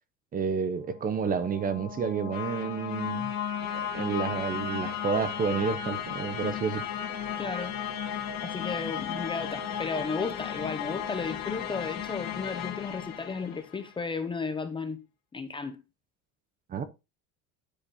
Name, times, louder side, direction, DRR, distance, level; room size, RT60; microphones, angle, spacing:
voice 1, 0.3-3.3 3.9-6.8 16.7-16.8, right 6 dB, 25° right, 0.8 m, -30 dB
sound 1, 0.9-13.9, left 8 dB, 45° left, 2.1 m, -35 dB
voice 2, 7.4-7.7 8.4-15.0 15.3-15.8, left 4 dB, 15° left, 0.7 m, -34 dB
10.0 x 5.1 x 4.2 m
cardioid pair, 155°, 36 cm